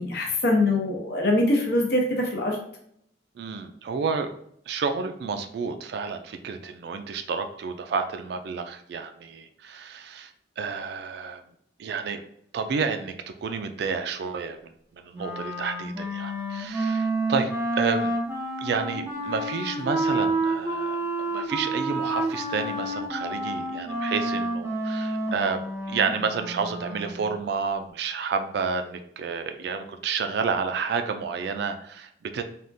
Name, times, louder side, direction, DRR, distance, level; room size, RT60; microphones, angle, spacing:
voice 1, 0.0-2.6, left 2 dB, 60° left, 0 dB, 0.7 m, -23 dB
voice 2, 3.4-4.3 4.7-10.3 10.6-11.4 11.8-12.2 12.5-18.1 18.6-21.0 21.3-32.4, right 5 dB, 60° right, 7 dB, 0.3 m, -30 dB
Wind instrument woodwind instrument, 15.1-27.2, right 2 dB, 15° right, 0.6 m, -29 dB
3.5 x 2.3 x 2.6 m, 0.69 s
head